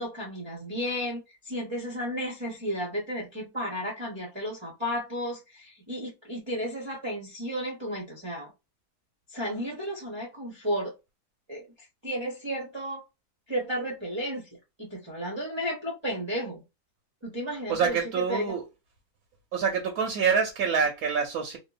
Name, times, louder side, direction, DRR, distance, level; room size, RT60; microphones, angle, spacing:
voice 1, 0.0-8.5 9.3-10.9 11.5-11.7 12.0-13.0 13.5-14.5 14.8-16.6 17.2-18.5, equal, 20° right, 0.8 m, -33 dB
voice 2, 17.7-18.6 19.5-21.6, right 6 dB, 75° right, 1.2 m, -26 dB
2.8 x 2.4 x 2.3 m
omnidirectional pair, 1.7 m